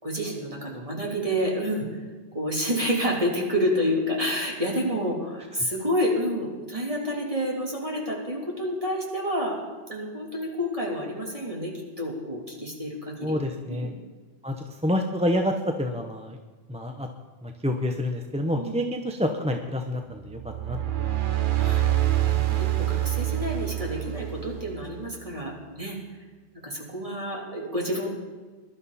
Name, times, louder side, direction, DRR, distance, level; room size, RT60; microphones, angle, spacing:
voice 1, 0.0-2.0 2.3-9.6 9.9-13.4 13.7-13.9 18.5-18.7 21.6-22.0 22.2-26.0 26.6-28.1, equal, 30° right, -3 dB, 3.3 m, -29 dB
voice 2, 13.2-13.9 14.4-14.5 14.8-16.4 16.7-17.1 17.4-20.8, left 1 dB, 5° right, 3 dB, 0.7 m, -28 dB
sound 1, 20.3-25.0, right 14 dB, 50° right, 0.9 m, -26 dB
21.5 x 12.0 x 4.2 m, 1.4 s
omnidirectional pair, 1.2 m